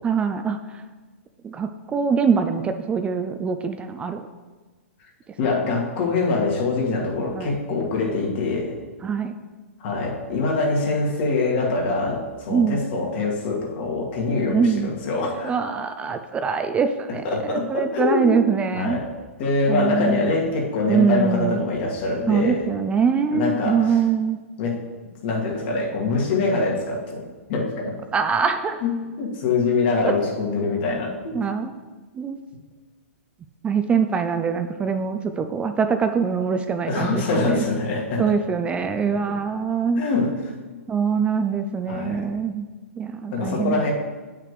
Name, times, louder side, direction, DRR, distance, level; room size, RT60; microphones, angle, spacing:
voice 1, 0.0-0.8 1.4-4.3 7.3-7.6 9.0-9.3 12.5-12.8 14.5-14.9 15.4-19.0 19.7-20.3 20.9-21.6 22.3-24.4 28.1-28.8 30.0-30.1 31.3-31.7 32.1-32.4 33.6-37.6 38.2-40.0 40.9-42.7 43.0-43.9, right 6 dB, 15° right, 8 dB, 0.3 m, -23 dB
voice 2, 5.4-8.8 9.8-15.6 17.2-19.1 19.4-22.6 23.3-24.0 24.6-24.8 25.2-27.9 28.8-31.4 36.9-38.4 39.1-39.4 40.0-40.3 41.9-42.3 43.3-43.9, left 3 dB, 50° left, -1 dB, 1.8 m, -24 dB
9.0 x 5.8 x 3.2 m, 1.3 s
hypercardioid pair, 115°, 8 cm